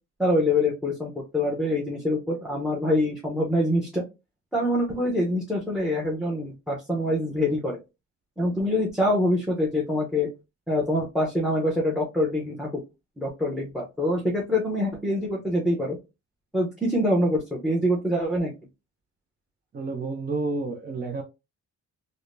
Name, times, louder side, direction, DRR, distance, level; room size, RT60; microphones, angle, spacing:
voice 1, 0.2-4.0 4.5-7.8 8.4-10.3 10.7-12.7 13.2-16.0 16.5-18.5, left 1 dB, ahead, 0.7 m, -25 dB
voice 2, 19.7-21.2, right 3 dB, 30° right, 0.5 m, -30 dB
4.9 x 2.1 x 2.5 m
wide cardioid pair, 145°, 30 cm